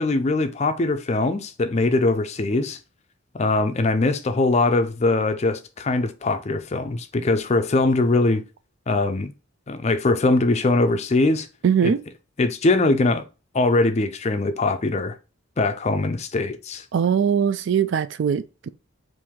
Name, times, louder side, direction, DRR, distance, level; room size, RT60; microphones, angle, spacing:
voice 1, 0.0-2.8 3.3-8.4 8.9-9.3 9.7-11.5 11.8-11.9 12.4-13.2 13.5-15.2 15.6-16.8, left 2 dB, 30° left, 0.4 m, -21 dB
voice 2, 11.6-12.0 16.9-18.7, right 7 dB, 55° right, 0.3 m, -21 dB
4.6 x 2.6 x 3.5 m
head